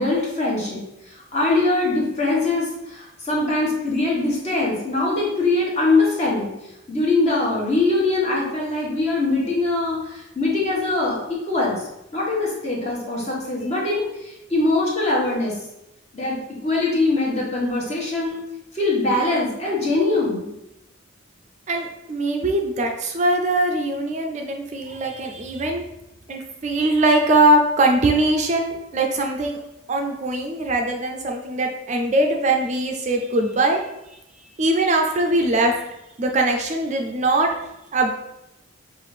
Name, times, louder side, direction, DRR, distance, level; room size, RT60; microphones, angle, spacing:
voice 1, 0.0-6.5 6.9-11.2 11.4-11.9 12.1-15.6 16.1-18.4 18.7-20.5, left 2 dB, 35° left, -4 dB, 1.2 m, -22 dB
voice 2, 21.7-25.9 26.3-29.6 29.9-33.8 34.6-35.7 36.2-37.5 37.9-38.1, right 2 dB, 35° right, 3 dB, 0.4 m, -21 dB
5.7 x 2.5 x 3.2 m, 0.90 s
head